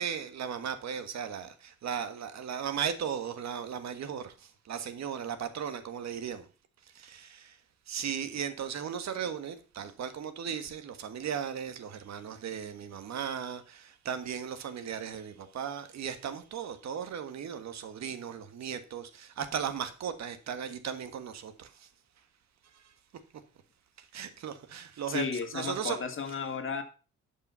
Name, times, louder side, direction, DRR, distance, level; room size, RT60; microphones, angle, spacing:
voice 1, 0.0-4.3 4.7-6.4 6.9-7.5 7.9-21.9 24.1-26.0, right 8 dB, 65° right, 1.5 m, -36 dB
voice 2, 25.1-26.8, left 5 dB, 45° left, 2.0 m, -33 dB
12.0 x 5.6 x 5.6 m
cardioid pair, 90°, 30 cm